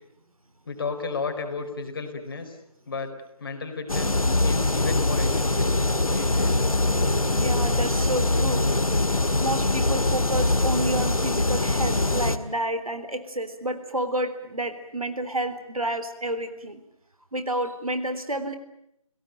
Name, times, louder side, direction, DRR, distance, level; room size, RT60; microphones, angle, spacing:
voice 1, 0.7-2.6 2.9-3.1 3.4-5.7 6.1-6.7, left 4 dB, 40° left, 6 dB, 4.3 m, -33 dB
sound 1, 3.9-12.4, left 2 dB, 80° left, 1.8 m, -23 dB
voice 2, 7.4-8.6 9.4-16.8 17.3-18.6, right 1 dB, 80° right, 9 dB, 3.7 m, -30 dB
29.0 x 17.5 x 9.1 m, 0.78 s
figure-of-eight pair, 155°, 18 cm